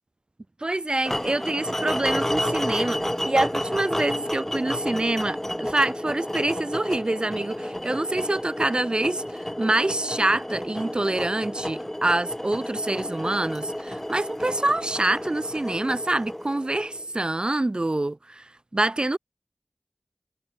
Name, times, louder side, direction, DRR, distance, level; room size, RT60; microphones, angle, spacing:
voice 1, 0.6-18.5 18.7-19.2, right 2 dB, 40° right, 0.4 m, -26 dB
sound 1, 1.0-17.2, equal, 15° left, 1.0 m, -31 dB
wide cardioid pair, 50°, 2 cm